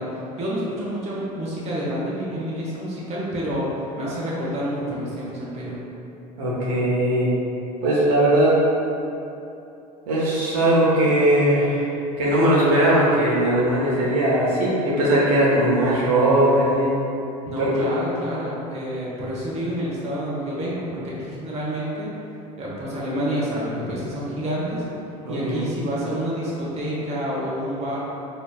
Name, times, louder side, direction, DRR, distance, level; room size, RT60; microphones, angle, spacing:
voice 1, 0.0-3.7 4.0-5.8 17.4-22.1 22.6-24.8 25.3-28.0, equal, 35° right, -6 dB, 1.0 m, -28 dB
voice 2, 6.4-7.3 7.8-8.5 10.1-11.9 12.2-16.9 17.6-17.9 25.2-25.7, right 1 dB, 75° right, -7 dB, 1.1 m, -19 dB
4.3 x 3.1 x 2.4 m, 2.8 s
hypercardioid pair, 80°, 20 cm